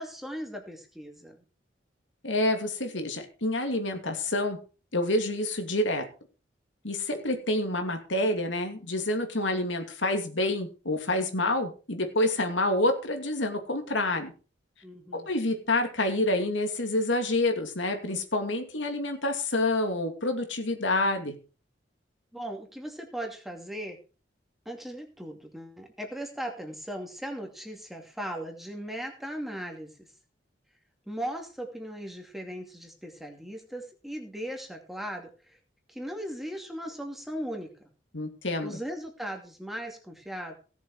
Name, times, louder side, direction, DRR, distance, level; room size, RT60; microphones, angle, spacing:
voice 1, 0.0-1.4 14.8-15.3 22.3-24.0 24.7-30.1 31.1-35.6 35.9-37.7 38.6-40.5, equal, ahead, 2 dB, 2.6 m, -38 dB
voice 2, 2.2-4.6 4.9-6.1 6.8-14.3 15.1-21.4 38.1-38.8, left 1 dB, 90° left, 5 dB, 2.5 m, -28 dB
17.5 x 7.3 x 4.8 m, 0.35 s
head